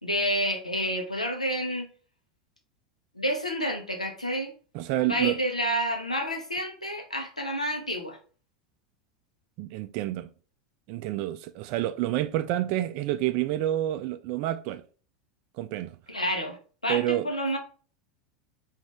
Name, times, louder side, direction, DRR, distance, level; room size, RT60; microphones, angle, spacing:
voice 1, 0.0-1.9 3.2-4.5 5.0-8.2 16.1-16.6 16.8-17.6, equal, 85° left, 0.9 m, -29 dB
voice 2, 4.7-5.4 9.6-10.3 10.9-14.8 15.6-16.0 16.9-17.3, right 14 dB, 45° right, 0.3 m, -28 dB
5.0 x 2.8 x 3.5 m
figure-of-eight pair, 80°, 4 cm